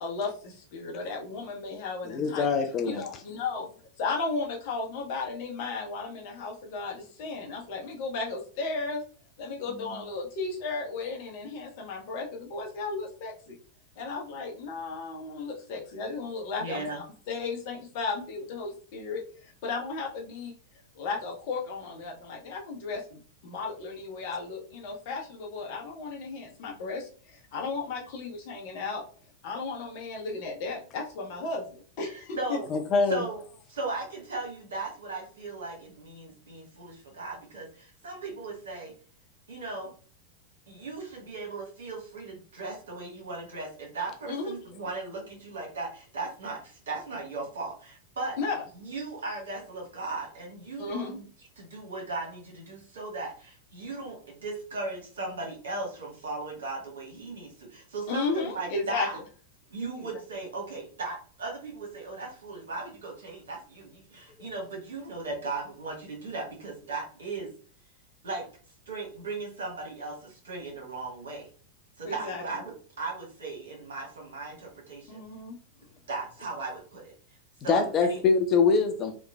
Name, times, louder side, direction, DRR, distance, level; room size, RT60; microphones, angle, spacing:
voice 1, 0.0-2.5 2.8-3.7 4.0-9.0 9.4-13.6 14.0-20.5 20.9-29.0 29.4-32.6 44.3-44.5 48.4-48.6 50.8-51.2 58.1-59.2 60.0-60.1 72.0-72.4 75.1-75.5, left 4 dB, 50° left, 0 dB, 0.8 m, -34 dB
voice 2, 2.1-3.0 32.7-33.2 77.7-79.1, left 5 dB, 30° left, 5 dB, 0.4 m, -24 dB
voice 3, 9.7-10.0 16.6-17.0 32.0-32.6 33.1-33.4 33.7-38.9 39.5-39.9 40.7-48.4 48.7-51.2 51.6-59.2 59.7-67.5 68.2-68.5 68.9-71.5 72.0-75.2 76.1-77.1 77.6-78.2, right 3 dB, 65° right, -1 dB, 1.3 m, -37 dB
3.0 x 2.3 x 2.3 m, 0.41 s
figure-of-eight pair, 90°, 0 cm